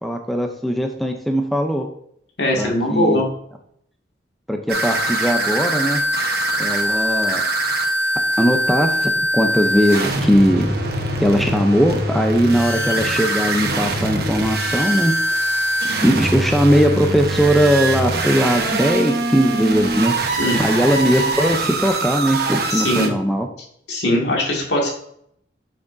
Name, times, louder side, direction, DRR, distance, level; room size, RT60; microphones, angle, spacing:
voice 1, 0.0-1.9 2.6-3.2 4.5-6.0 6.6-7.4 8.4-10.7 11.2-15.4 16.0-23.5, equal, ahead, 4 dB, 0.5 m, -19 dB
voice 2, 2.4-3.3 20.4-20.6 22.7-23.1 23.9-24.9, left 1 dB, 70° left, -1 dB, 2.0 m, -20 dB
sound 1, 4.7-23.1, right 1 dB, 55° right, 1.0 m, -22 dB
7.7 x 6.0 x 2.6 m, 0.69 s
head